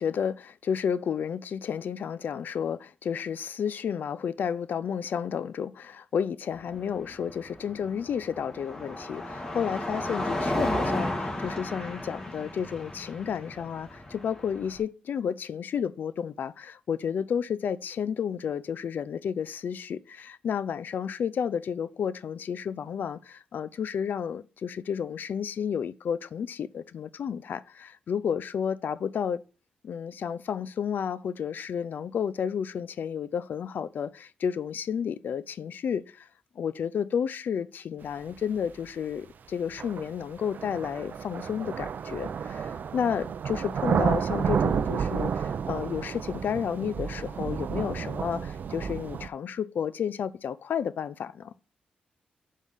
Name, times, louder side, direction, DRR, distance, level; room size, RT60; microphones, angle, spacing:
voice 1, 0.0-29.4 29.8-36.3 36.6-51.5, left 7 dB, 65° left, 0.5 m, -31 dB
Car passing by, 6.5-14.8, left 1 dB, 25° left, 2.3 m, -33 dB
sound 1, 38.7-38.8 39.8-49.3, right 7 dB, 60° right, 0.5 m, -31 dB
5.5 x 4.7 x 5.6 m
cardioid pair, 65°, 3 cm